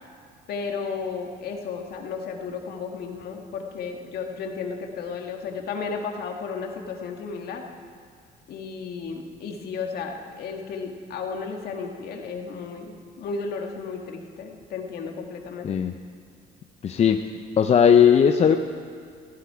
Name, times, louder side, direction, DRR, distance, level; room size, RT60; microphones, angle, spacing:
voice 1, 0.5-7.6 8.5-15.7, left 5 dB, 65° left, 2 dB, 2.0 m, -33 dB
voice 2, 16.8-17.3 17.6-18.6, left 7 dB, 40° left, 7 dB, 0.6 m, -17 dB
19.5 x 15.5 x 4.8 m, 2.1 s
cardioid pair, 110°, 17 cm